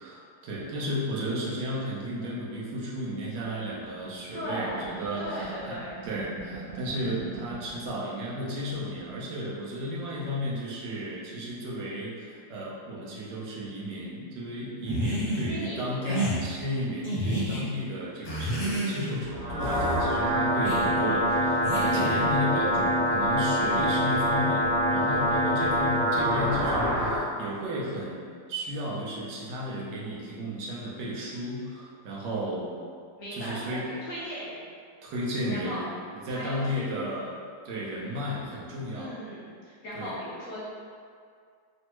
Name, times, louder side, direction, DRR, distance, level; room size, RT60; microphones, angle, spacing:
voice 1, 0.0-28.2 28.5-32.7 33.3-33.9 35.0-35.9 36.2-37.4 37.6-39.2 39.9-40.2, equal, 85° right, -5 dB, 1.3 m, -34 dB
sound 1, 3.6-7.9 8.3-8.4 8.6-9.2, right 5 dB, 65° right, 0.8 m, -43 dB
voice 2, 4.3-6.0 15.5-16.3 23.6-24.0 33.2-34.7 35.5-35.8 36.3-36.9 38.9-40.6, equal, 70° left, -7 dB, 0.8 m, -38 dB
sound 2, 14.9-15.5 16.0-16.4 17.0-17.6 18.2-19.2 19.6-20.0 20.6-20.9 21.6-22.3, right 1 dB, 40° left, 0.5 m, -30 dB
sound 3, 19.2-27.2, equal, 45° right, 1.4 m, -25 dB
3.3 x 2.1 x 2.9 m, 2.2 s
omnidirectional pair, 1.8 m